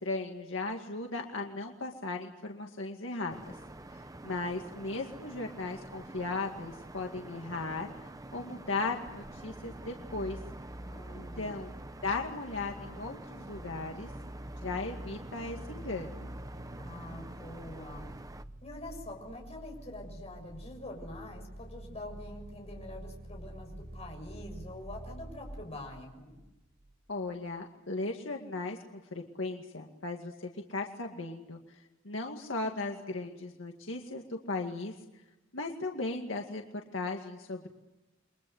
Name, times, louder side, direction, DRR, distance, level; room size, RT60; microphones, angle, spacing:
voice 1, 0.0-3.5 4.2-7.9 8.3-10.4 11.4-11.7 12.0-14.1 14.6-16.3 27.1-31.8 32.0-34.9 35.5-36.6 36.9-37.7, left 3 dB, 70° left, 2 dB, 2.2 m, -37 dB
sound 1, 3.3-18.4, right 1 dB, 20° right, 0.9 m, -47 dB
sound 2, 9.5-27.0 27.3-27.4, right 1 dB, 40° right, 1.5 m, -47 dB
voice 2, 10.8-11.6 16.8-18.1 18.6-26.4, left 1 dB, 35° left, 2 dB, 7.0 m, -45 dB
29.5 x 23.5 x 8.0 m, 1.0 s
head